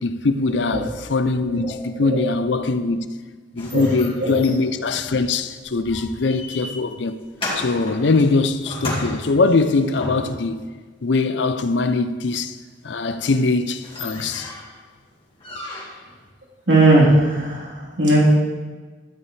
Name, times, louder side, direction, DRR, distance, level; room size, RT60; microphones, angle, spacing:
voice 1, 0.0-3.1 3.5-7.2 7.6-10.6 11.0-12.6 12.8-14.5, left 3 dB, 75° left, 0.6 m, -22 dB
voice 2, 1.5-2.2 3.7-3.8 4.2-4.4 16.7-18.2, right 2 dB, 85° right, 3.7 m, -18 dB
sound 1, 3.6-10.6 13.0-13.1 13.4-13.5 13.7-14.8 15.4-16.1, left 1 dB, 30° left, 2.3 m, -34 dB
13.0 x 9.5 x 3.3 m
head